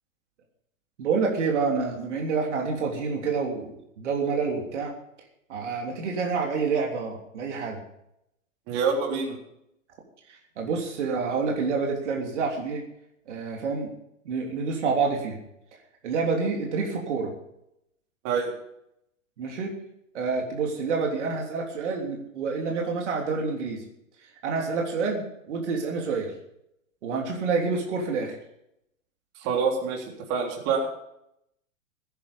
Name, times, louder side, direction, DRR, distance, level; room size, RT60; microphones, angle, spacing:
voice 1, 1.0-4.9 5.5-7.8 10.3-12.8 13.3-13.9 14.2-15.4 16.0-17.3 19.4-19.7 20.1-23.8 24.4-26.3 27.0-28.3, right 4 dB, 60° right, 0 dB, 3.3 m, -28 dB
voice 2, 8.7-9.4 18.2-18.5 29.4-30.9, right 5 dB, 40° right, 0 dB, 3.7 m, -26 dB
17.5 x 10.0 x 5.5 m, 0.79 s
figure-of-eight pair, 110°, 39 cm